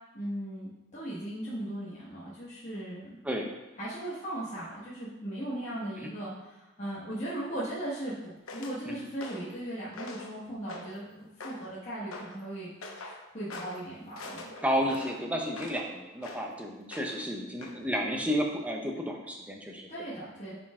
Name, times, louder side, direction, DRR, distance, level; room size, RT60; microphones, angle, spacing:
voice 1, 0.1-3.2 3.8-12.7 13.0-14.5 19.9-20.6, right 1 dB, 30° left, -10 dB, 1.6 m, -38 dB
sound 1, 8.5-8.8 9.2-9.5 9.9-10.3 10.7-11.0 11.4-11.7 12.1-12.3 12.8-13.2 13.5-13.8 14.2-15.9 16.2-16.5 16.9-17.3 17.6-17.8, left 2 dB, 80° left, 1.0 m, -43 dB
voice 2, 14.6-19.9, equal, 5° right, 1 dB, 0.8 m, -32 dB
10.5 x 4.4 x 3.7 m, 1.0 s
head